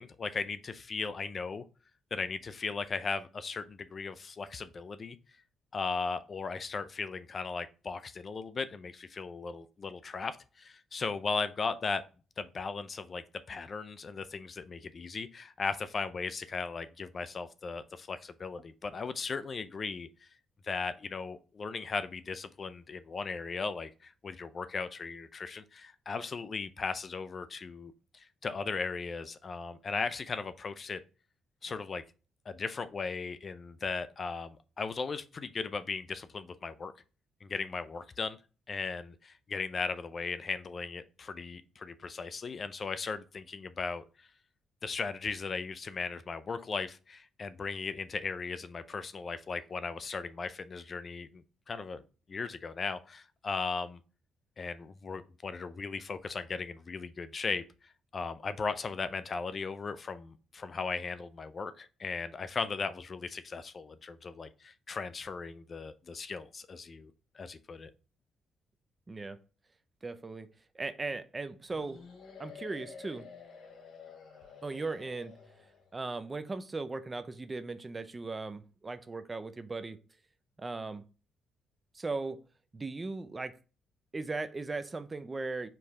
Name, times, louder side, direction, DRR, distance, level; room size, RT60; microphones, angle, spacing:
voice 1, 0.0-1.6 2.1-5.2 5.7-12.0 12.4-20.1 20.6-31.0 31.6-32.0 32.5-36.9 37.4-38.4 38.7-44.3 44.8-52.0 52.3-54.0 54.6-57.6 58.1-67.9, left 4 dB, 40° left, 0.4 m, -37 dB
voice 2, 69.1-69.4 70.0-70.5 70.7-72.0 72.4-73.3 74.6-75.3 75.9-80.0 80.6-81.0 81.9-82.4 82.7-83.6 84.1-85.7, right 3 dB, 25° right, 0.5 m, -38 dB
sound 1, 71.7-75.9, left 6 dB, 70° left, 2.4 m, -50 dB
4.5 x 3.2 x 3.6 m
cardioid pair, 90°, 0 cm